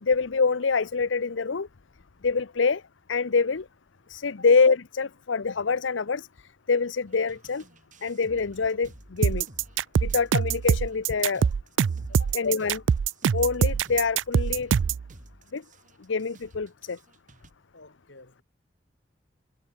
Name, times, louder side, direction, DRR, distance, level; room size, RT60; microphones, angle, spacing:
voice 1, 0.0-1.7 2.2-2.8 3.1-3.7 4.1-6.3 6.7-7.6 8.0-9.5 10.0-11.5 12.3-12.8 13.3-14.7 15.5-15.6 16.1-17.0, left 4 dB, 85° left, 0.7 m, -25 dB
sound 1, 7.1-17.5, right 1 dB, 45° right, 3.1 m, -52 dB
sound 2, 9.2-15.0, right 7 dB, 80° right, 0.4 m, -23 dB
voice 2, 17.7-18.4, left 3 dB, 70° left, 3.4 m, -50 dB
head